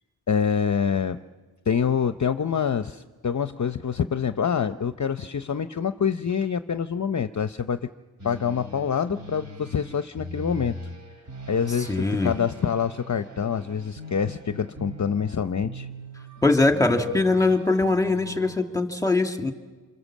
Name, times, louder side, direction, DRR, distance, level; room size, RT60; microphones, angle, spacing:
voice 1, 0.3-1.2 1.7-7.8 8.2-10.8 11.5-15.9, left 7 dB, 40° left, 10 dB, 0.7 m, -26 dB
sound 1, 8.2-18.6, equal, 40° right, 3.5 m, -41 dB
voice 2, 11.9-12.3 16.4-19.5, left 3 dB, 5° left, 5 dB, 2.0 m, -22 dB
29.0 x 27.0 x 7.4 m, 1.3 s
wide cardioid pair, 125°, 45 cm